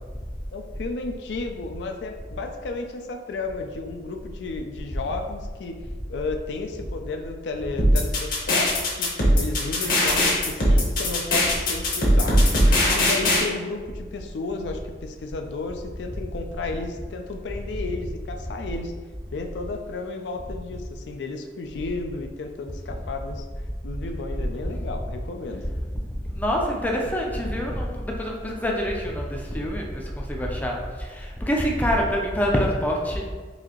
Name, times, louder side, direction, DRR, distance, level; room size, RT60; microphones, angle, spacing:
voice 1, 0.5-5.8 6.1-12.4 12.9-18.9 19.3-23.4 23.8-25.6, left 3 dB, 80° left, 4 dB, 0.4 m, -33 dB
sound 1, 7.8-13.4, left 1 dB, 50° left, 0.9 m, -19 dB
voice 2, 26.1-33.3, equal, 10° left, -1 dB, 0.4 m, -26 dB
4.0 x 2.7 x 2.9 m, 1.4 s
head